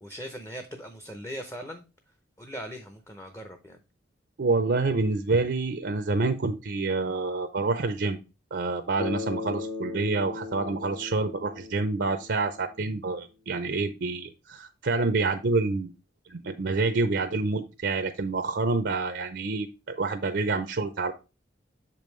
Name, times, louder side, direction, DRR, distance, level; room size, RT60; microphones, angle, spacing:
voice 1, 0.0-1.8 2.4-3.8, equal, 15° left, 0.6 m, -40 dB
voice 2, 4.4-8.2 8.5-15.9 16.3-21.1, right 3 dB, 55° right, 0.5 m, -27 dB
Bass guitar, 9.0-13.0, left 4 dB, 80° left, 2.5 m, -37 dB
7.1 x 5.3 x 3.1 m
head